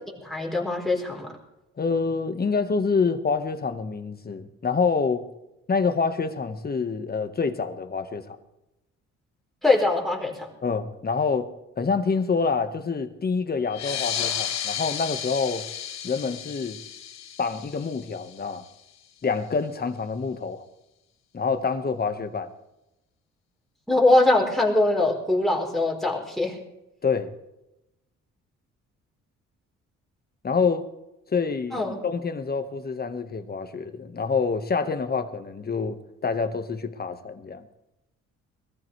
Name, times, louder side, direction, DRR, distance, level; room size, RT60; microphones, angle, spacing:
voice 1, 0.1-1.4 9.6-10.5 23.9-26.6 31.7-32.0, left 2 dB, ahead, 4.2 m, -22 dB
voice 2, 1.8-5.3 5.7-8.4 10.6-11.5 11.8-15.6 16.0-16.8 17.4-18.6 19.2-20.6 21.3-22.5 27.0-27.3 30.4-30.9 31.3-37.6, left 5 dB, 30° left, 1.5 m, -27 dB
sound 1, 13.7-18.8, left 9 dB, 60° left, 1.2 m, -33 dB
23.0 x 14.0 x 3.4 m
cardioid pair, 90°, 30 cm